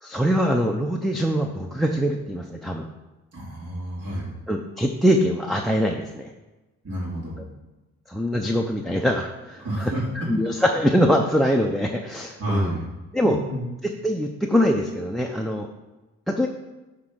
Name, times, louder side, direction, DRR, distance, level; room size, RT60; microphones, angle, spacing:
voice 1, 0.0-2.9 4.5-6.3 8.1-12.8 13.1-13.4 13.8-15.7 16.3-16.5, equal, ahead, 2 dB, 0.6 m, -23 dB
voice 2, 3.3-4.3 6.8-7.5 9.6-10.0 12.4-12.8 13.2-13.7, right 1 dB, 55° right, -8 dB, 3.1 m, -30 dB
9.3 x 3.7 x 6.1 m, 1.1 s
cardioid pair, 90°, 30 cm